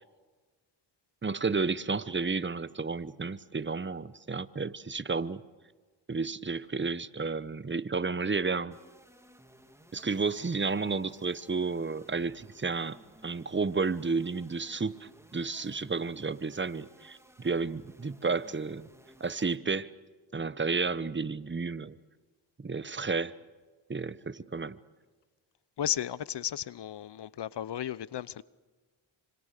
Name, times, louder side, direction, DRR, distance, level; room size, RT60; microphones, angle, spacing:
voice 1, 1.2-5.4 6.1-8.8 9.9-13.0 13.2-18.9 19.2-19.9 20.3-21.9 22.6-23.3 23.9-24.8, right 4 dB, 25° right, 1.1 m, -32 dB
sound 1, 8.7-19.6, right 1 dB, 5° right, 2.7 m, -58 dB
voice 2, 25.8-28.4, left 10 dB, 60° left, 0.8 m, -34 dB
26.5 x 25.5 x 6.7 m
cardioid pair, 65°, 48 cm